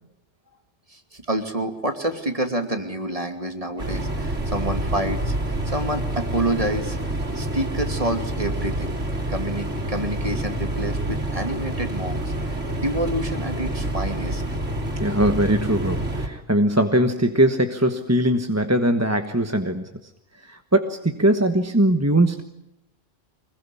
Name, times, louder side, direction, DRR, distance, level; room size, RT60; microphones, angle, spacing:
voice 1, 0.9-7.0 7.3-8.9 9.3-12.6 12.8-14.4, right 1 dB, 30° right, 5 dB, 2.8 m, -28 dB
sound 1, 3.8-16.3, right 1 dB, 85° right, 3.5 m, -27 dB
voice 2, 15.0-19.9 20.4-22.4, right 1 dB, 15° right, 6 dB, 1.2 m, -21 dB
25.0 x 21.5 x 9.9 m, 0.81 s
omnidirectional pair, 1.2 m